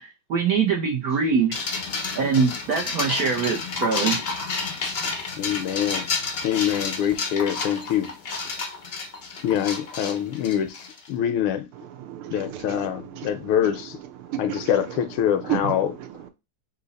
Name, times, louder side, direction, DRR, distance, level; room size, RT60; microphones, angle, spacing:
voice 1, 0.0-1.5 2.1-4.2, right 5 dB, 65° right, 0.9 m, -23 dB
sound 1, 1.5-11.1, left 4 dB, 60° left, 0.6 m, -30 dB
voice 2, 5.4-6.1 6.4-8.1 9.4-11.7 12.3-14.0 14.4-15.9, left 10 dB, 80° left, 1.5 m, -25 dB
voice 3, 11.7-16.3, right 11 dB, 90° right, 1.7 m, -34 dB
4.0 x 2.8 x 4.0 m
omnidirectional pair, 2.4 m